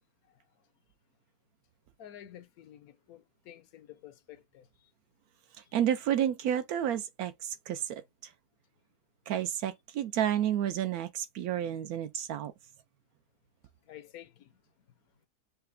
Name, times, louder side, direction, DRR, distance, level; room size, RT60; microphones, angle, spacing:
voice 1, 2.0-4.7 13.9-14.5, left 11 dB, 70° left, 1.0 m, -50 dB
voice 2, 5.7-8.3 9.3-12.5, right 10 dB, 70° right, 1.0 m, -31 dB
5.6 x 2.1 x 3.7 m
omnidirectional pair, 1.7 m